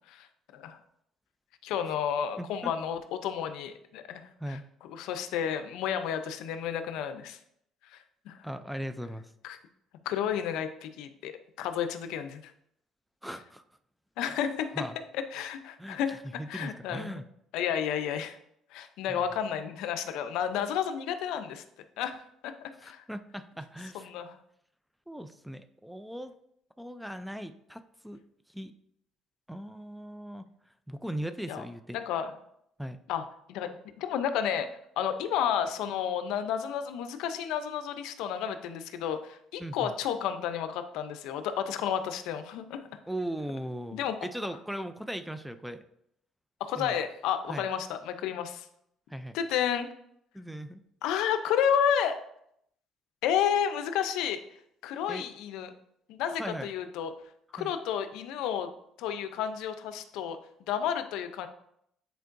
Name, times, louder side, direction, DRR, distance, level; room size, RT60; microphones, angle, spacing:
voice 1, 1.6-7.4 7.8-8.4 9.4-9.6 10.0-12.5 14.2-14.8 15.1-16.2 16.5-17.2 17.5-18.4 18.7-21.6 22.0-23.0 23.9-24.4 31.5-31.6 31.9-32.3 33.1-33.7 34.0-34.7 35.0-42.8 43.9-44.1 46.6-48.7 49.3-49.9 51.0-52.2 53.2-54.4 54.8-55.7 56.1-57.1 57.5-58.7 59.0-61.5, left 8 dB, 80° left, 9 dB, 0.6 m, -31 dB
voice 2, 2.4-2.7 4.4-4.6 8.4-9.3 13.2-13.6 14.8-14.9 15.8-17.2 19.1-19.2 22.8-24.1 25.1-26.3 26.8-28.2 28.5-28.7 29.5-30.5 30.9-32.0 32.8-33.0 39.6-39.9 43.1-45.8 46.8-47.0 47.5-47.7 49.1-49.4 50.3-50.8 55.1-55.3 56.4-56.7 57.6-57.7, right 1 dB, 5° right, 10 dB, 0.4 m, -38 dB
9.3 x 4.5 x 2.6 m, 0.72 s
cardioid pair, 110°, 0 cm